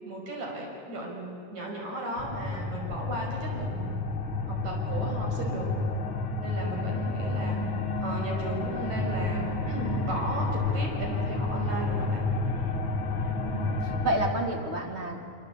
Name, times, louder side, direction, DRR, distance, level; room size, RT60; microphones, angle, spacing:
voice 1, 0.0-4.0 4.5-5.7 6.4-7.6 8.0-12.3, right 1 dB, 70° right, 0 dB, 7.1 m, -35 dB
sound 1, 2.2-14.3, left 3 dB, 45° left, 2.2 m, -30 dB
voice 2, 13.4-15.3, right 1 dB, 20° right, 2 dB, 3.0 m, -30 dB
25.5 x 25.5 x 8.5 m, 2.6 s
omnidirectional pair, 3.4 m